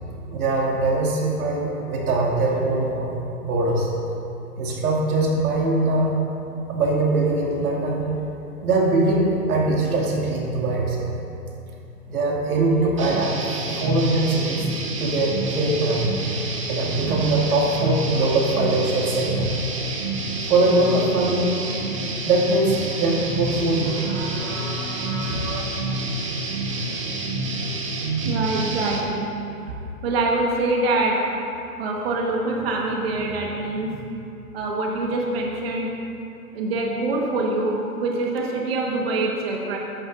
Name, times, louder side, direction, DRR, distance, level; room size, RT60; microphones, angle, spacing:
voice 1, 0.3-3.9 4.6-6.1 6.7-8.0 8.6-11.1 12.1-13.4 13.7-14.7 15.0-16.0 16.7-19.5 20.5-21.5 22.2-25.6, right 2 dB, 65° right, -3 dB, 2.6 m, -22 dB
sound 1, 13.0-29.0, right 2 dB, 20° right, 0.6 m, -28 dB
voice 2, 28.2-29.3 29.7-31.2 31.8-34.0 34.5-35.9 36.5-39.8, right 2 dB, 40° right, -1 dB, 1.6 m, -24 dB
14.0 x 11.5 x 2.7 m, 2.7 s
hypercardioid pair, 165°, 47 cm